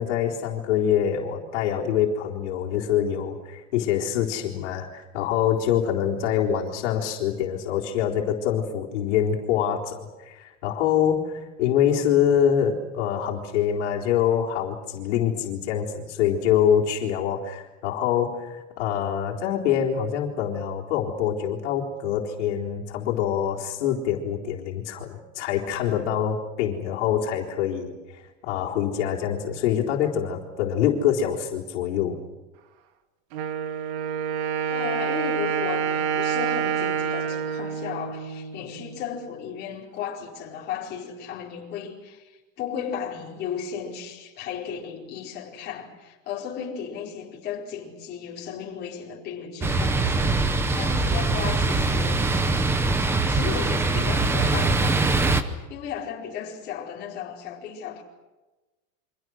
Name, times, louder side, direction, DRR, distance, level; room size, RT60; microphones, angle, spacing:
voice 1, 0.0-32.2, left 9 dB, 60° left, 4.0 m, -25 dB
Wind instrument woodwind instrument, 33.3-39.0, right 8 dB, 55° right, 2.4 m, -28 dB
voice 2, 34.7-52.6 53.3-58.0, left 8 dB, 25° left, 4.7 m, -35 dB
sound 1, 49.6-55.4, right 3 dB, 5° right, 0.8 m, -22 dB
29.0 x 25.5 x 6.4 m
supercardioid pair, 175°, 39 cm